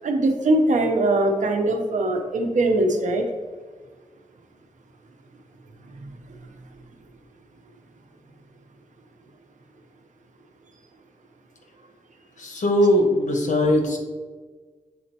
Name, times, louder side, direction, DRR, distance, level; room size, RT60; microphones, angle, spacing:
voice 1, 0.0-3.3 6.0-6.2, right 2 dB, 80° right, 4 dB, 0.9 m, -21 dB
voice 2, 12.4-14.0, left 1 dB, 80° left, 2 dB, 1.2 m, -20 dB
8.5 x 4.2 x 2.9 m, 1.4 s
wide cardioid pair, 100°, 13 cm